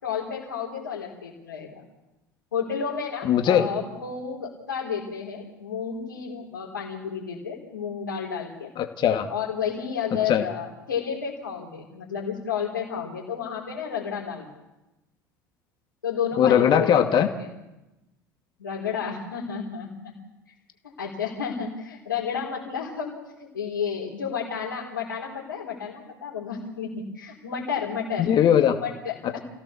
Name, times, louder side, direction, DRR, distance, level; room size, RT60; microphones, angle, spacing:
voice 1, 0.0-1.8 2.5-8.7 9.3-14.5 16.0-17.2 18.6-19.9 21.0-28.3 28.8-29.4, left 7 dB, 80° left, -5 dB, 4.4 m, -31 dB
voice 2, 3.2-3.7 8.8-9.3 10.3-10.4 16.4-17.3 28.2-28.8, left 9 dB, 45° left, 5 dB, 2.4 m, -19 dB
29.0 x 17.0 x 7.2 m, 0.99 s
figure-of-eight pair, 70°, 11 cm